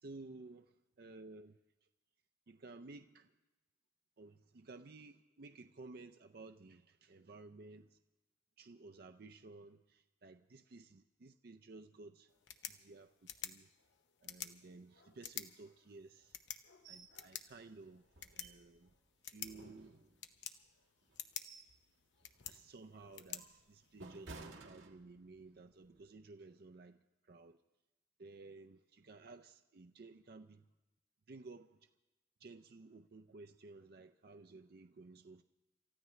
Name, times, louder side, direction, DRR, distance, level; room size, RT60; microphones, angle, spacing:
voice 1, 0.0-1.6 2.5-3.3 4.2-8.0 8.6-12.3 12.7-13.7 14.2-16.4 16.9-18.0 18.3-18.9 19.3-20.0 22.5-27.6 28.2-30.7 31.3-31.8 32.4-35.4, right 3 dB, 55° right, 7 dB, 0.5 m, -55 dB
sound 1, 12.3-24.3, left 9 dB, 70° left, 0.9 m, -51 dB
sound 2, 16.8-17.2 17.5-17.6 18.1-18.9 19.4-20.4 21.0-21.8 22.2-22.5 23.0-25.5 25.8-26.1, right 3 dB, 90° right, 1.5 m, -55 dB
29.0 x 14.5 x 3.2 m, 1.0 s
head